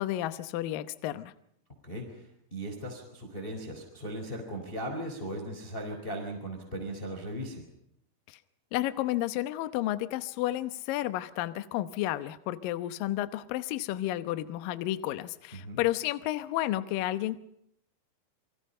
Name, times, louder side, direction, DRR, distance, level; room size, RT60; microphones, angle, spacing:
voice 1, 0.0-1.3 8.3-8.4 8.7-17.4, left 14 dB, 75° left, 12 dB, 2.1 m, -31 dB
voice 2, 1.8-2.2 2.5-7.6 15.5-15.8, right 1 dB, 10° left, 3 dB, 4.0 m, -38 dB
29.0 x 23.5 x 5.6 m, 0.72 s
omnidirectional pair, 5.2 m